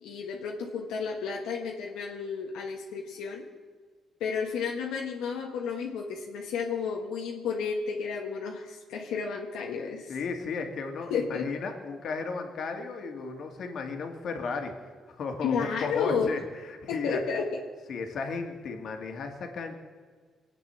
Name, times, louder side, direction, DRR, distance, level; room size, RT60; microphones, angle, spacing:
voice 1, 0.0-3.4 4.2-10.1 11.1-11.4 15.4-16.3 16.9-17.5, left 6 dB, 90° left, -1 dB, 1.5 m, -32 dB
voice 2, 10.1-14.7 15.2-17.2 17.9-19.8, left 4 dB, 65° left, 4 dB, 2.2 m, -34 dB
22.5 x 8.6 x 7.0 m, 1.5 s
cardioid pair, 90°, 0 cm